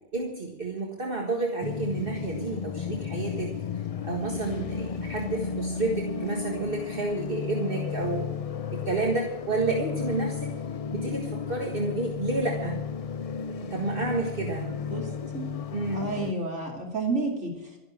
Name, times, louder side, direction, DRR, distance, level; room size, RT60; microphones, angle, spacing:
voice 1, 0.1-3.5 4.0-8.3 8.7-10.5 10.9-12.9 13.6-14.8 15.7-16.1, right 3 dB, 50° right, 1 dB, 1.8 m, -30 dB
sound 1, 1.6-16.3, left 6 dB, 45° left, 0.5 m, -33 dB
voice 2, 14.8-15.5 15.9-17.8, right 3 dB, 85° right, 0 dB, 3.0 m, -31 dB
13.0 x 11.0 x 8.7 m, 0.98 s
omnidirectional pair, 1.2 m